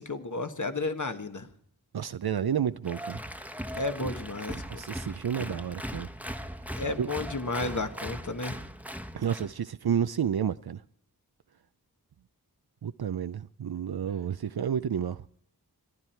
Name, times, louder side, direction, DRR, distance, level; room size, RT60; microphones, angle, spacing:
voice 1, 0.0-1.5 3.8-4.8 6.8-8.6, left 3 dB, 50° left, 1.5 m, -33 dB
voice 2, 1.9-3.2 4.6-6.1 7.0-7.1 9.1-10.8 12.8-15.2, right 8 dB, 70° right, 0.5 m, -30 dB
Applause, 2.9-9.5, equal, 5° right, 1.1 m, -39 dB
25.5 x 11.0 x 4.5 m
wide cardioid pair, 45°, 39 cm